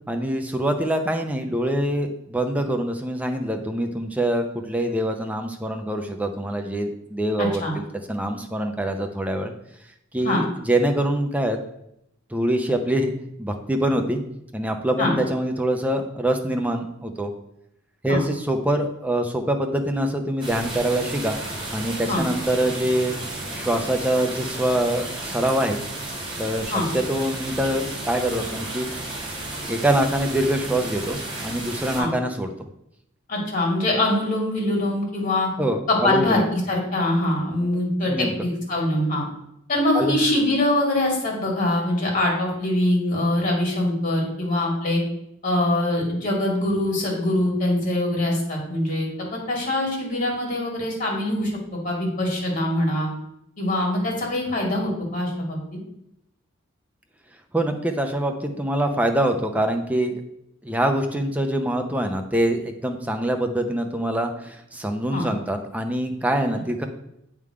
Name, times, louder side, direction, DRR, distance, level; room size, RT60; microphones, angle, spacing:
voice 1, 0.1-9.5 10.1-11.6 12.3-13.1 13.4-14.2 14.5-17.3 18.0-21.4 21.7-23.2 23.5-25.8 26.4-28.9 29.7-32.5 35.6-36.4 38.1-38.3 39.9-40.2 57.5-60.2 60.6-66.8, right 1 dB, 5° right, 4 dB, 0.6 m, -24 dB
voice 2, 7.4-7.7 10.2-10.4 15.0-15.1 18.1-18.2 22.1-22.2 26.7-26.9 32.0-32.1 33.3-35.5 35.9-39.2 39.7-45.0 45.4-51.5 51.8-53.1 53.6-55.6 65.1-65.2, left 1 dB, 40° left, -2 dB, 2.2 m, -23 dB
sound 1, 20.4-32.0, right 2 dB, 25° right, 1.7 m, -33 dB
8.1 x 3.7 x 4.8 m, 0.80 s
head